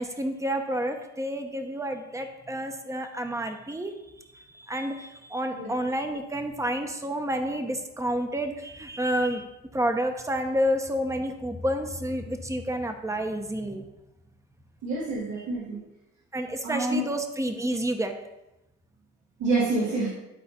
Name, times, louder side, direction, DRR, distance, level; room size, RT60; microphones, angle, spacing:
voice 1, 0.0-3.9 4.3-9.4 9.7-13.8 16.3-18.1, equal, 10° right, 6 dB, 1.0 m, -29 dB
voice 2, 14.8-15.8 16.6-17.0 19.4-20.1, right 2 dB, 80° right, -7 dB, 2.5 m, -27 dB
12.0 x 4.2 x 4.3 m, 0.94 s
cardioid pair, 90°, 30 cm